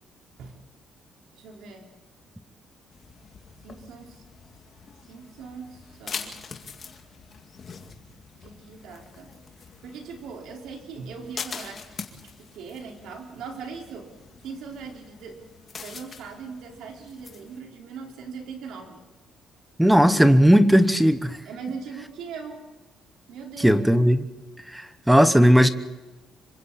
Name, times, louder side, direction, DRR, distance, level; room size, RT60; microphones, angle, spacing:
voice 1, 1.3-1.9 3.6-4.2 5.1-6.4 8.4-9.3 9.8-12.0 12.2-14.1 14.4-15.4 15.8-19.0 21.4-22.6 23.3-23.8, right 5 dB, 75° right, 1 dB, 4.5 m, -40 dB
sound 1, 2.9-17.6, left 6 dB, 35° left, 2.1 m, -43 dB
voice 2, 19.8-21.4 23.6-24.2 24.7-25.7, equal, 5° right, 11 dB, 1.0 m, -17 dB
27.0 x 25.0 x 4.2 m, 1.1 s
cardioid pair, 180°, 0 cm